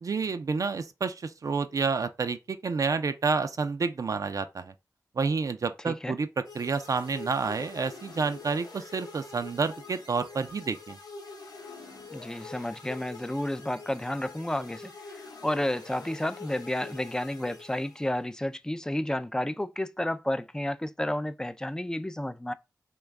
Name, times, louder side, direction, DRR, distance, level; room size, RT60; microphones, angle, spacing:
voice 1, 0.0-4.7 5.2-11.0, right 4 dB, 60° right, 0.4 m, -29 dB
sound 1, 6.4-18.3, left 3 dB, 80° left, 0.7 m, -46 dB
voice 2, 12.1-22.5, left 1 dB, 10° left, 0.3 m, -31 dB
3.0 x 2.2 x 3.5 m
cardioid pair, 40°, 7 cm